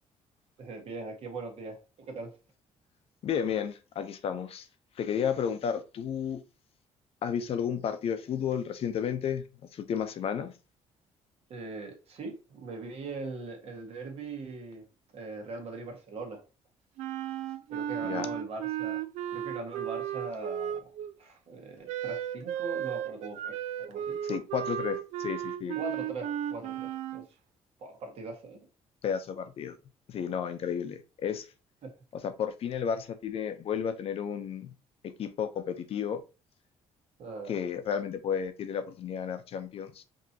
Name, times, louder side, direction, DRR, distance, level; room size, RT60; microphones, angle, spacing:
voice 1, 0.6-2.4 11.5-14.8 15.1-16.4 17.7-19.0 19.3-20.9 21.2-24.2 25.7-27.2 27.8-28.6 31.8-31.9 37.2-37.6, right 3 dB, 60° right, 1.5 m, -41 dB
voice 2, 3.2-4.7 5.0-6.4 7.2-9.4 9.7-10.5 18.0-18.3 24.2-25.8 29.0-29.8 30.1-31.5 32.2-34.7 35.0-36.2 37.5-40.0, left 8 dB, 55° left, 0.7 m, -32 dB
Wind instrument woodwind instrument, 17.0-21.1 21.9-27.3, right 10 dB, 85° right, 0.4 m, -35 dB
5.2 x 2.9 x 2.8 m
cardioid pair, 110°, 12 cm